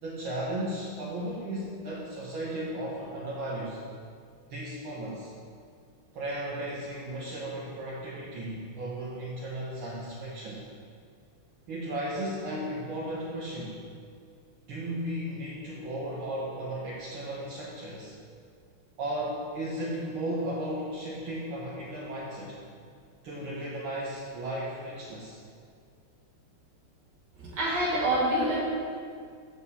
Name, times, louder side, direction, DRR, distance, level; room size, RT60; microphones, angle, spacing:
voice 1, 0.0-3.8 4.5-5.3 6.1-10.6 11.7-13.8 14.7-18.1 19.0-22.6 23.2-25.4, right 1 dB, 70° right, -6 dB, 1.8 m, -35 dB
voice 2, 27.5-28.7, right 1 dB, 50° right, -6 dB, 2.6 m, -26 dB
7.0 x 4.8 x 6.9 m, 2.2 s
omnidirectional pair, 2.4 m